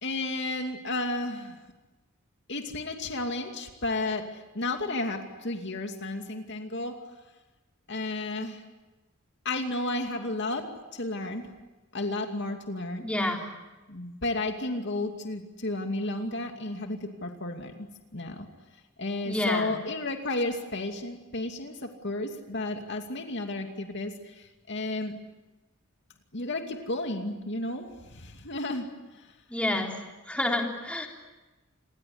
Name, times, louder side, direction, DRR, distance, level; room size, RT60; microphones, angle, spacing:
voice 1, 0.0-1.6 2.5-7.0 7.9-8.6 9.4-11.5 11.9-13.1 13.9-18.5 19.0-25.2 26.3-29.4, left 2 dB, 55° left, 5 dB, 2.6 m, -33 dB
voice 2, 13.0-13.4 19.3-19.8 29.5-29.9 30.3-31.1, left 1 dB, 5° left, 1 dB, 3.9 m, -28 dB
28.0 x 22.0 x 9.5 m, 1.1 s
head